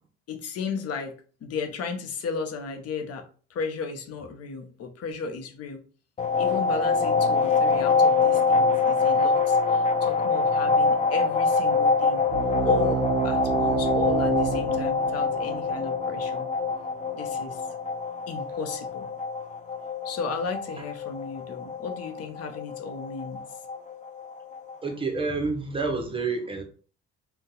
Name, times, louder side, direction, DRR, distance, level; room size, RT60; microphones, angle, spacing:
voice 1, 0.3-5.8 6.3-12.3 12.6-16.5 17.1-17.6 18.3-19.1 20.0-23.4, left 4 dB, 55° left, 0.7 m, -34 dB
sound 1, 6.2-24.8, left 4 dB, 25° left, 0.4 m, -25 dB
sound 2, 12.3-17.4, right 6 dB, 65° right, 0.7 m, -29 dB
voice 2, 24.8-26.6, right 4 dB, 20° right, 0.8 m, -28 dB
2.6 x 2.2 x 3.8 m
cardioid pair, 85°, 29 cm